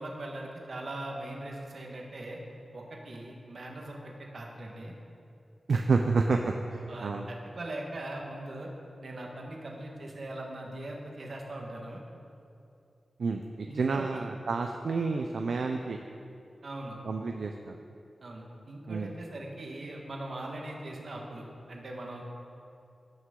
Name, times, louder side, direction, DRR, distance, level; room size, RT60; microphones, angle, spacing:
voice 1, 0.0-2.4 2.7-4.9 6.9-8.7 9.0-12.0 13.7-14.3 16.6-17.0 18.2-22.2, right 1 dB, 55° right, 0 dB, 1.4 m, -40 dB
voice 2, 5.7-7.3 13.2-16.0 17.0-17.8 18.9-19.1, right 4 dB, 75° right, 4 dB, 0.4 m, -29 dB
17.0 x 6.0 x 3.8 m, 2.6 s
wide cardioid pair, 135°, 0 cm